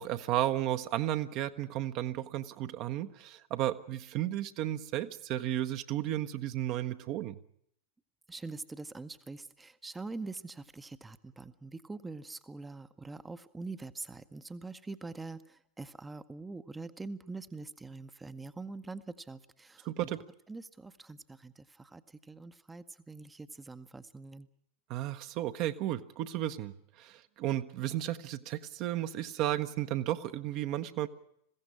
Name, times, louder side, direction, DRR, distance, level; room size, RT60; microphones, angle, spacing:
voice 1, 0.0-7.4 19.8-20.2 24.9-31.1, right 13 dB, 40° right, 9 dB, 0.9 m, -33 dB
voice 2, 8.3-20.1 20.5-24.5, right 3 dB, 10° right, 11 dB, 0.8 m, -44 dB
21.0 x 16.0 x 9.8 m, 0.71 s
figure-of-eight pair, 90°, 0 cm